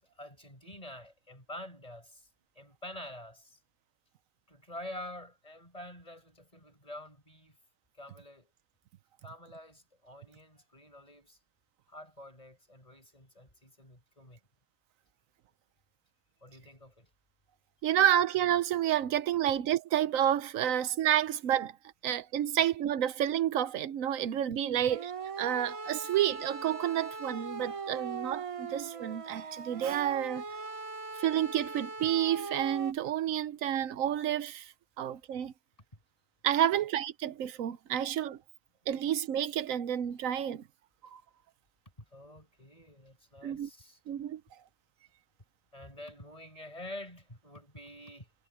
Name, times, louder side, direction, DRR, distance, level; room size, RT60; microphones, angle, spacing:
voice 1, 0.2-2.3 2.5-3.6 4.5-7.6 7.9-8.5 9.2-11.4 11.9-14.4 16.4-17.1 24.7-24.9 42.1-44.0 45.7-48.3, left 1 dB, 25° left, 6.3 m, -47 dB
voice 2, 17.8-21.7 22.0-25.1 25.4-30.4 31.2-35.5 36.4-38.4 38.9-40.6 41.1-41.2 43.4-43.7 44.1-44.4, right 11 dB, 90° right, 1.1 m, -30 dB
sound 1, 24.9-32.9, right 5 dB, 35° right, 0.6 m, -40 dB
omnidirectional pair, 1.4 m